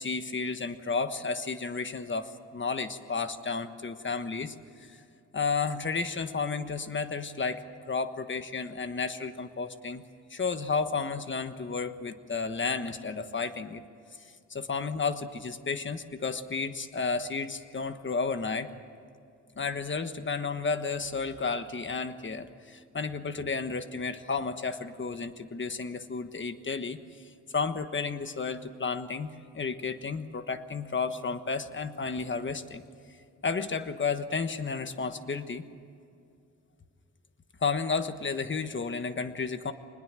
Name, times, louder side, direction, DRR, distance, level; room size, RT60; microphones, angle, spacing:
voice 1, 0.0-4.5 5.3-10.0 10.3-13.8 14.5-18.7 19.6-27.0 27.5-29.3 29.5-32.8 33.4-35.6 37.6-39.7, left 4 dB, 40° left, 9 dB, 1.4 m, -32 dB
25.5 x 20.5 x 7.6 m, 2.5 s
wide cardioid pair, 120°, 30 cm